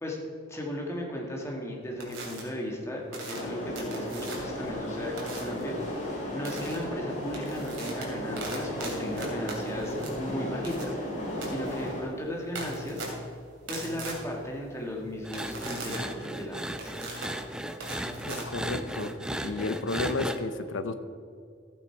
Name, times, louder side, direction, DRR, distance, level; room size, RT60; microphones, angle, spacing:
voice 1, 0.5-5.8 6.3-11.0 11.5-13.1 13.7-16.9, equal, 15° left, -1 dB, 1.7 m, -36 dB
sound 1, 2.0-2.4 3.1-4.6 5.2-5.6 6.4-6.8 7.2-19.1, right 2 dB, 85° right, 3.0 m, -40 dB
sound 2, 3.3-12.0, left 1 dB, 40° left, 3.0 m, -35 dB
sound 3, 15.2-20.4, right 1 dB, 5° right, 0.4 m, -36 dB
voice 2, 18.2-20.9, left 3 dB, 75° left, 11 dB, 0.7 m, -32 dB
13.5 x 8.7 x 4.5 m, 2.3 s
head